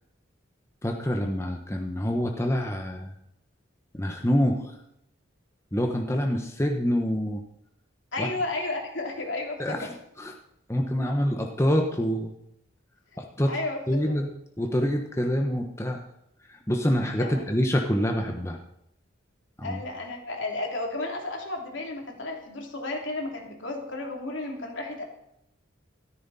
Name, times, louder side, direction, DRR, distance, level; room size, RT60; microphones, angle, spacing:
voice 1, 0.8-3.1 3.9-4.7 5.7-7.4 8.2-8.3 9.6-9.8 10.2-10.3 10.7-12.3 13.2-13.5 13.9-14.3 14.6-16.0 16.7-18.6 19.6-19.8, equal, 15° left, 2 dB, 1.1 m, -26 dB
voice 2, 8.1-10.0 11.1-11.2 13.5-14.2 17.2-17.4 19.6-25.0, left 2 dB, 75° left, 1 dB, 3.1 m, -33 dB
14.0 x 13.5 x 4.2 m, 0.80 s
head